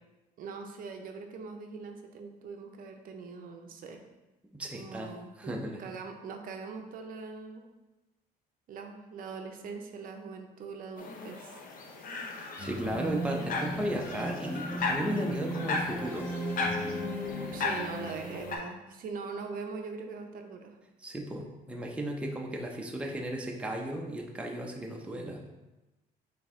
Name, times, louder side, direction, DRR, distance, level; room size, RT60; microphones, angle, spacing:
voice 1, 0.4-4.0 4.7-7.7 8.7-11.6 17.5-20.8, right 4 dB, 55° right, 4 dB, 0.5 m, -42 dB
voice 2, 4.5-5.1 5.4-5.8 12.6-16.3 21.0-25.4, right 1 dB, 5° right, 1 dB, 0.5 m, -35 dB
sound 1, 11.0-18.6, left 3 dB, 55° left, 0.7 m, -36 dB
sound 2, 12.6-18.5, right 1 dB, 10° left, 1.1 m, -37 dB
5.2 x 2.8 x 3.5 m, 1.1 s
cardioid pair, 110°, 17 cm